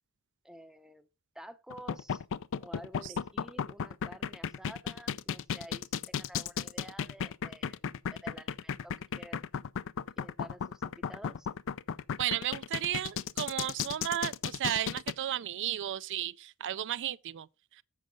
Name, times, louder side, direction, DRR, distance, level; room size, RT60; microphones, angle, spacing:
voice 1, 0.4-1.1 1.3-2.2 2.6-9.6 10.2-11.5, right 1 dB, ahead, 0.6 m, -51 dB
sound 1, 1.7-15.1, left 7 dB, 60° left, 0.4 m, -34 dB
voice 2, 12.2-17.5, right 11 dB, 55° right, 0.4 m, -34 dB
7.7 x 6.3 x 5.1 m
head